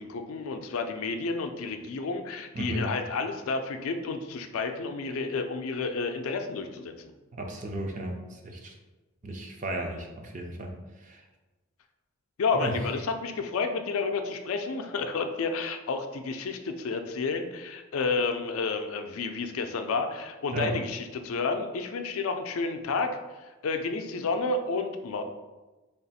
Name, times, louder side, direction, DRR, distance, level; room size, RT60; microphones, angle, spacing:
voice 1, 0.0-6.9 12.4-23.2 23.6-25.2, left 4 dB, 70° left, 6 dB, 0.4 m, -30 dB
voice 2, 7.3-8.7 9.2-10.7 11.0-11.2 12.5-12.7 20.5-20.7, right 1 dB, 35° right, 2 dB, 0.4 m, -34 dB
3.4 x 2.4 x 4.0 m, 1.2 s
head